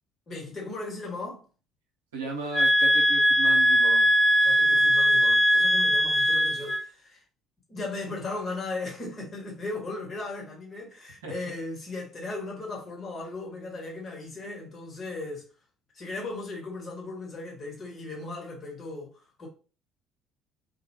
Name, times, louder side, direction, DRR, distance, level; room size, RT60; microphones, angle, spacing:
voice 1, 0.3-1.4 4.4-7.2 7.7-15.5 15.9-19.1 19.4-19.5, left 3 dB, 35° left, 1.1 m, -37 dB
voice 2, 2.1-4.1 11.2-11.3, right 3 dB, 70° right, 0.7 m, -36 dB
sound 1, 2.5-6.8, equal, 15° left, 0.3 m, -21 dB
2.2 x 2.2 x 3.0 m
figure-of-eight pair, 55°, 0 cm